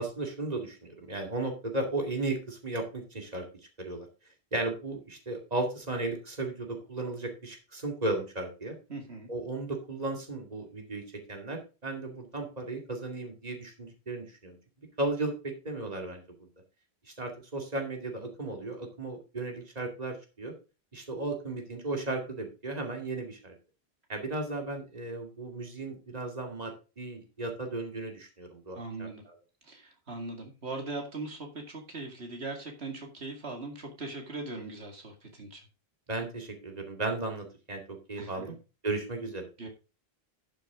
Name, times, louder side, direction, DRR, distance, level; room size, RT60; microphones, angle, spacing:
voice 1, 0.0-3.4 3.8-4.1 4.5-8.7 9.3-11.0 11.3-14.6 15.0-16.2 17.2-20.5 20.9-23.5 24.1-29.3 36.1-38.5 38.8-39.5, right 2 dB, 40° right, 3 dB, 2.5 m, -35 dB
voice 2, 8.9-9.3 28.8-29.2 29.6-35.6 38.2-38.5 39.6-39.7, right 3 dB, 85° right, 3 dB, 2.5 m, -40 dB
12.0 x 7.0 x 3.7 m, 0.31 s
omnidirectional pair, 1.1 m